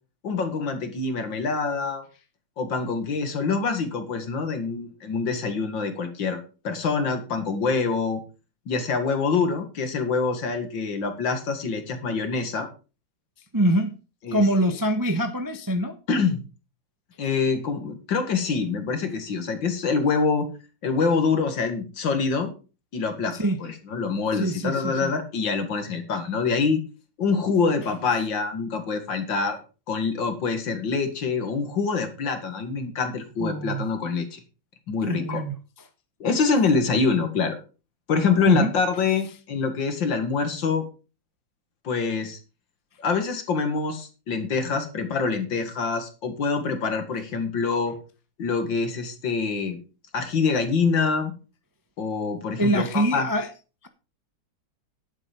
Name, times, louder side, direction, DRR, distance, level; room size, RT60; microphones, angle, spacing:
voice 1, 0.2-2.0 2.6-8.2 8.7-12.7 14.2-14.4 16.1-16.4 17.2-20.5 20.8-22.5 22.9-26.8 27.2-29.6 29.9-34.4 34.9-35.4 36.2-37.6 38.1-40.8 41.8-42.4 43.0-48.0 48.4-49.8 50.1-51.3 52.0-53.3, left 4 dB, 70° left, 8 dB, 2.5 m, -25 dB
voice 2, 13.5-13.9 14.3-15.9 23.3-23.6 24.3-25.1 33.4-33.9 35.0-35.5 38.5-38.7 52.6-53.5, right 1 dB, 20° right, 8 dB, 0.6 m, -24 dB
11.0 x 7.9 x 5.3 m, 0.34 s
omnidirectional pair, 2.2 m